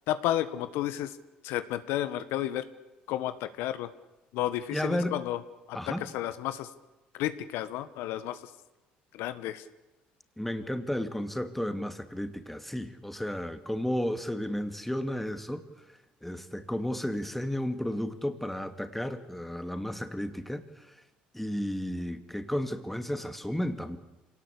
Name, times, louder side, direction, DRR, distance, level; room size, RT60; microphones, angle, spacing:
voice 1, 0.1-1.2 1.4-2.6 3.1-3.9 4.3-5.4 5.7-6.7 7.1-8.4 9.1-9.6, left 13 dB, 75° left, 12 dB, 1.3 m, -32 dB
voice 2, 4.7-5.2 5.7-6.1 10.4-20.9 21.3-24.0, equal, 5° left, 9 dB, 2.4 m, -33 dB
26.5 x 18.5 x 8.5 m, 1.0 s
hypercardioid pair, 70°, 4 cm